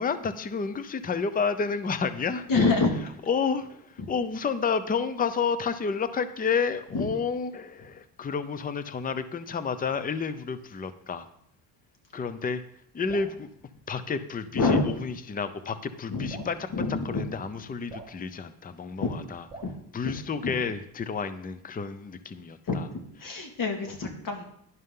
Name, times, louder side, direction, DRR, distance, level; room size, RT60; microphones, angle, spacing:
voice 1, 0.0-2.5 3.3-11.3 12.1-12.6 12.9-13.5 13.9-19.4 19.9-22.9, left 5 dB, 20° left, 12 dB, 0.7 m, -30 dB
voice 2, 2.5-2.9 4.0-4.1 6.9-7.1 14.5-14.8 16.1-17.3 19.0-19.1 19.6-19.7 20.0-20.1 20.4-20.5 22.7-22.8 23.2-24.4, left 3 dB, 55° left, 3 dB, 2.3 m, -26 dB
Drip, 13.1-13.4 14.7-14.9 16.3-16.6 17.9-18.2 19.5-19.8, right 3 dB, 10° right, 4.3 m, -43 dB
11.5 x 11.0 x 3.8 m, 0.72 s
cardioid pair, 105°, 41 cm